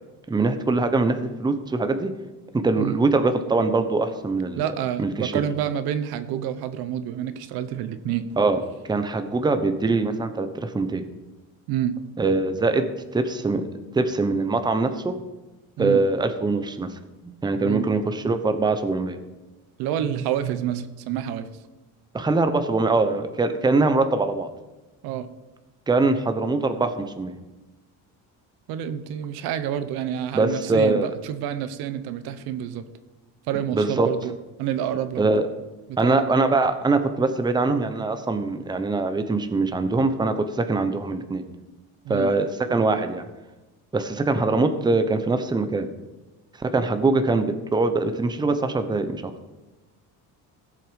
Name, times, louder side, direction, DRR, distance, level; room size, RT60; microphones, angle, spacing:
voice 1, 0.3-2.1 2.6-4.6 5.0-5.4 8.4-8.6 8.9-11.0 12.2-13.7 13.9-15.1 15.8-16.9 17.2-19.2 22.1-24.5 25.9-27.3 30.3-31.1 33.7-34.1 35.2-35.5 36.0-41.4 42.1-43.3 43.9-45.9 46.7-49.3, right 3 dB, 10° right, 8 dB, 0.9 m, -23 dB
voice 2, 4.6-8.3 11.7-12.0 15.8-16.0 17.6-17.9 19.8-21.5 25.0-25.3 28.7-32.8 33.5-34.3 34.6-35.2 35.9-36.2 42.0-42.3, right 10 dB, 85° right, 11 dB, 1.1 m, -28 dB
17.0 x 7.7 x 5.3 m, 1.1 s
cardioid pair, 150°, 36 cm